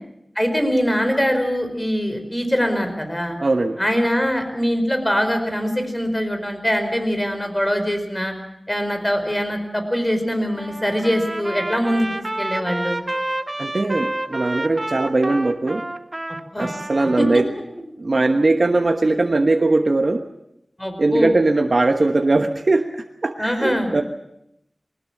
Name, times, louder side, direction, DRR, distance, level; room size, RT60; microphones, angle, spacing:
voice 1, 0.3-3.4 3.8-8.3 8.7-13.0 16.5-16.7 17.2-17.4 18.1-18.2 20.8-21.3 23.4-23.9, equal, 15° left, 7 dB, 4.9 m, -22 dB
voice 2, 3.4-3.8 13.6-15.8 16.6-17.5 18.0-20.2 21.0-22.9 23.2-24.0, right 2 dB, 60° right, 4 dB, 1.2 m, -19 dB
Trumpet, 10.6-17.4, right 1 dB, 35° right, 1.6 m, -29 dB
21.0 x 19.0 x 7.3 m, 0.82 s
wide cardioid pair, 50°, 0 cm